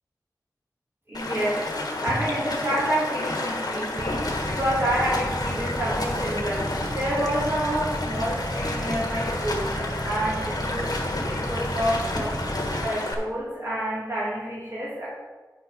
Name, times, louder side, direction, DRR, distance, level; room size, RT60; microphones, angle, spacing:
Stream, 1.1-13.1, left 2 dB, 65° left, 1.6 m, -30 dB
voice 1, 1.1-1.6 2.0-9.7 10.0-12.3 12.8-15.1, right 1 dB, 40° right, -8 dB, 2.8 m, -28 dB
sound 1, 4.0-12.9, right 1 dB, 15° right, 0.8 m, -33 dB
9.5 x 5.8 x 5.4 m, 1.3 s
wide cardioid pair, 70°, 7 cm